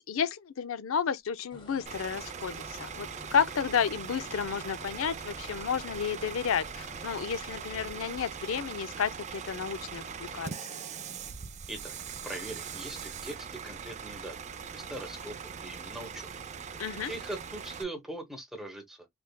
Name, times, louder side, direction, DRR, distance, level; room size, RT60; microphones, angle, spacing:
voice 1, 0.1-10.5 16.8-17.1, left 7 dB, 65° left, 0.5 m, -32 dB
sound 1, 1.5-7.4, left 2 dB, 20° left, 1.2 m, -51 dB
Bus / Idling, 1.9-17.8, right 6 dB, 35° right, 0.4 m, -41 dB
voice 2, 12.2-14.4 14.7-16.3 17.1-19.1, right 1 dB, ahead, 1.0 m, -41 dB
3.3 x 3.3 x 2.2 m
head